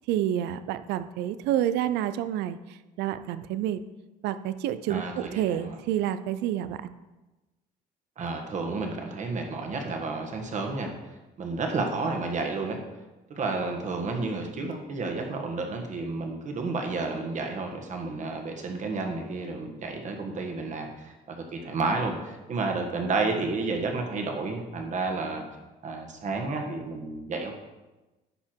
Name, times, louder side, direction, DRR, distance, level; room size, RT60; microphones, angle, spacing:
voice 1, 0.1-2.6 3.0-3.8 4.2-6.9, right 11 dB, 85° right, 13 dB, 0.5 m, -28 dB
voice 2, 4.9-5.8 8.2-10.9 11.4-12.8 13.3-25.4 25.8-27.5, right 3 dB, 45° right, 3 dB, 1.6 m, -31 dB
9.9 x 5.9 x 4.5 m, 1.1 s
cardioid pair, 110°, 17 cm